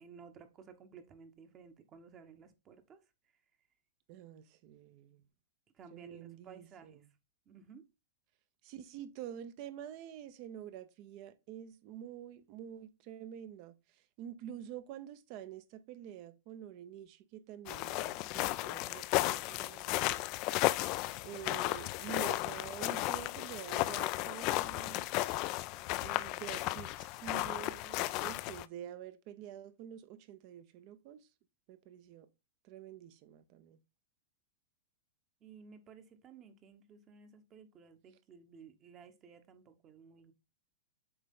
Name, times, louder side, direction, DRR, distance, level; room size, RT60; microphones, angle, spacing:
voice 1, 0.0-3.0 5.7-7.1 7.5-7.8 35.4-40.3, right 6 dB, 30° right, 1.0 m, -56 dB
voice 2, 4.1-5.2 5.9-7.0 8.6-13.8 14.2-20.2 21.2-25.1 26.0-31.3 31.7-32.3 32.6-33.8, right 10 dB, 45° right, 0.7 m, -48 dB
sound 1, 17.7-28.7, left 18 dB, 45° left, 0.3 m, -34 dB
7.9 x 3.3 x 3.7 m
hypercardioid pair, 125°, 0 cm